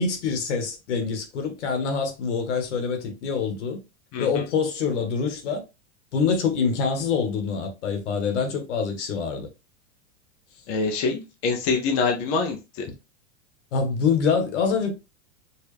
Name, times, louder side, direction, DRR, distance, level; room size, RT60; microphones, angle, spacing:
voice 1, 0.0-3.8 4.2-5.6 6.1-9.5 13.7-14.9, left 5 dB, 80° left, 1.5 m, -25 dB
voice 2, 4.1-4.5 10.7-12.8, left 4 dB, 20° left, 0.4 m, -25 dB
4.5 x 2.4 x 3.3 m
supercardioid pair, 170°, 35 cm